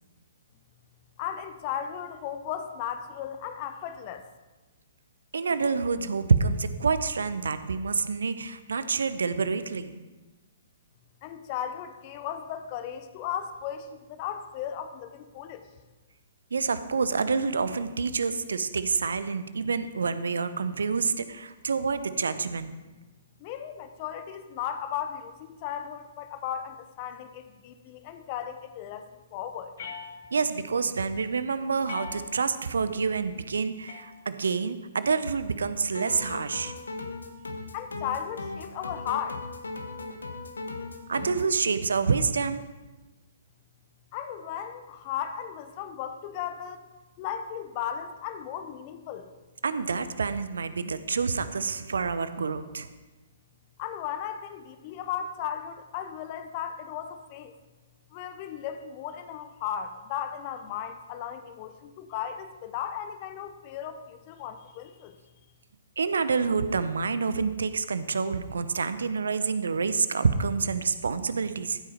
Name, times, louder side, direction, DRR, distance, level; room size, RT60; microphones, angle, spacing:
voice 1, 1.2-4.3 11.2-15.7 23.4-29.7 37.7-39.4 44.1-46.8 47.2-49.3 53.8-57.5 58.1-65.2, left 9 dB, 35° left, 9 dB, 0.8 m, -36 dB
voice 2, 5.3-10.0 16.5-22.8 30.3-36.7 41.1-42.6 49.6-52.9 66.0-71.8, right 5 dB, 65° right, 13 dB, 0.7 m, -27 dB
sound 1, 29.8-30.7 31.8-32.7 33.9-34.7, left 6 dB, 50° left, 1.7 m, -43 dB
sound 2, 35.9-41.5, left 3 dB, 70° left, 1.3 m, -38 dB
15.0 x 8.6 x 4.4 m, 1.2 s
figure-of-eight pair, 120°, 0 cm